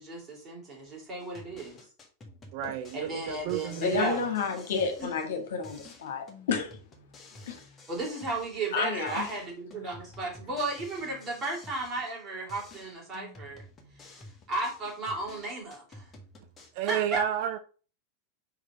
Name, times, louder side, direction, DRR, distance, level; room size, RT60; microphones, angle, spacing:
voice 1, 0.0-1.8 2.9-4.2 5.0-5.1 7.9-13.6 13.9-14.2 14.5-16.1 16.9-17.2, right 2 dB, 25° right, 3.7 m, -34 dB
sound 1, 1.2-5.4 5.6-8.8 9.1-12.2 12.5-16.7, left 2 dB, 20° left, 1.7 m, -51 dB
voice 2, 2.5-4.2 16.7-17.6, right 11 dB, 45° right, 0.5 m, -31 dB
voice 3, 3.8-6.8 7.5-7.6 8.7-9.3, left 6 dB, 60° left, 1.8 m, -30 dB
5.1 x 5.0 x 5.1 m
figure-of-eight pair, 90°, 0 cm